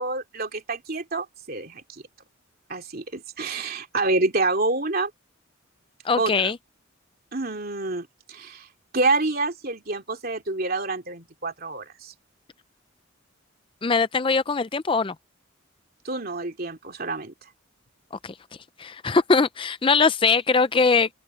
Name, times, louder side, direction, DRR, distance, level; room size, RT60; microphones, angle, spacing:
voice 1, 0.0-2.0 2.7-5.1 6.2-6.5 7.3-8.7 8.9-12.1 16.0-17.3, right 3 dB, 45° right, 3.0 m, -27 dB
voice 2, 6.0-6.6 13.8-15.1 18.2-18.3 18.8-21.1, left 4 dB, 25° left, 0.4 m, -21 dB
head